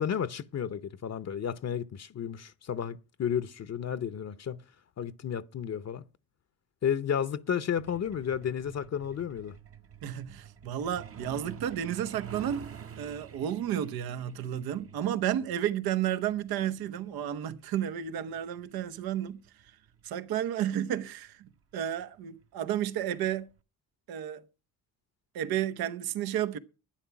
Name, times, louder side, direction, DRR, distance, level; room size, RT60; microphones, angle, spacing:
voice 1, 0.0-4.6 5.0-6.0 6.8-9.6, left 8 dB, 45° left, 0.8 m, -32 dB
Truck, 7.8-20.1 21.3-21.5 21.9-22.0 22.4-22.7 23.0-23.1 23.6-23.7, right 8 dB, 40° right, 0.9 m, -48 dB
voice 2, 10.0-19.4 20.0-23.5 24.1-24.4 25.3-26.6, right 10 dB, 75° right, 1.0 m, -32 dB
11.5 x 9.7 x 5.8 m
supercardioid pair, 70°, 36 cm